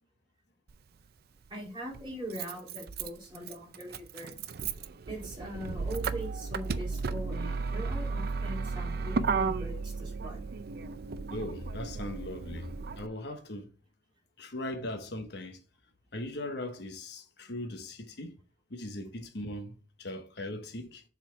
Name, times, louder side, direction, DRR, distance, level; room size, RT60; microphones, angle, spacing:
Motor vehicle (road), 0.7-0.8 1.9-13.1, right 4 dB, 60° right, 0.5 m, -34 dB
voice 1, 1.5-4.3 5.1-10.4, equal, 30° right, 3.4 m, -41 dB
voice 2, 11.3-13.7 14.4-15.6 16.1-18.4 18.7-21.0, left 1 dB, 65° left, 1.1 m, -39 dB
7.2 x 4.2 x 4.5 m
head